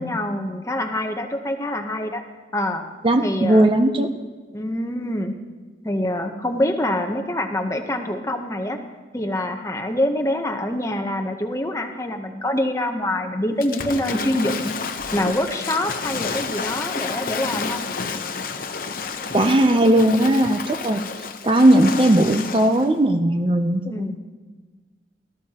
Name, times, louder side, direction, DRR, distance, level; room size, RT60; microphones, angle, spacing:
voice 1, 0.0-2.2 2.5-2.8 3.2-3.7 4.5-5.3 5.8-8.8 9.1-14.8 15.1-17.8 23.9-24.2, left 1 dB, 15° left, 5 dB, 0.8 m, -25 dB
voice 2, 3.0-4.1 4.9-5.1 19.3-21.0 21.4-24.1, right 1 dB, 30° right, 7 dB, 0.5 m, -17 dB
Waves surf / Splash splatter, 13.6-22.9, left 5 dB, 50° left, 0.8 m, -30 dB
17.5 x 13.5 x 2.9 m, 1.3 s
head